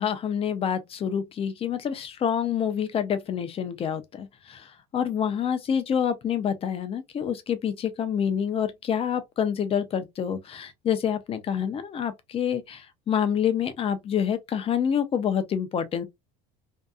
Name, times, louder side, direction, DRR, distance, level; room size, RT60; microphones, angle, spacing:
voice 1, 0.0-16.0, left 8 dB, 30° left, 0.5 m, -27 dB
2.7 x 2.2 x 2.2 m
cardioid pair, 130°, 20 cm